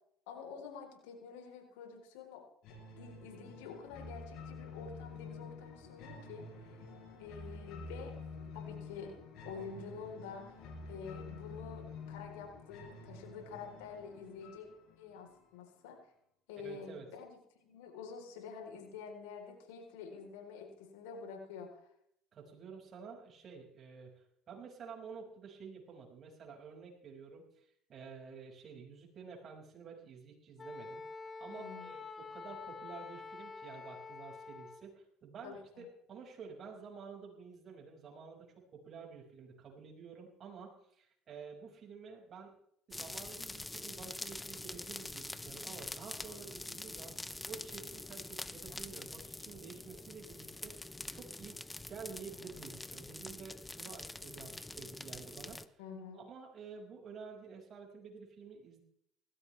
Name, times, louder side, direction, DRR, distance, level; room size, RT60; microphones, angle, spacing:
voice 1, 0.3-2.4 3.0-6.8 7.2-8.1 8.5-9.1 9.4-14.7 15.0-16.0 16.5-21.8 31.5-31.9 35.4-35.9 55.8-56.2, left 5 dB, 90° left, 2 dB, 4.0 m, -48 dB
sound 1, 2.6-15.6, left 3 dB, 70° left, 6.0 m, -49 dB
voice 2, 16.6-17.1 22.3-27.6 27.9-31.0 31.4-42.5 42.9-51.6 51.9-55.8 56.1-58.8, right 5 dB, 45° right, 0 dB, 5.9 m, -50 dB
Wind instrument woodwind instrument, 30.6-34.9, left 4 dB, 30° left, 1.4 m, -47 dB
sound 2, 42.9-55.7, left 2 dB, 10° left, 0.8 m, -45 dB
19.0 x 15.5 x 3.4 m, 0.72 s
supercardioid pair, 90°, 0 cm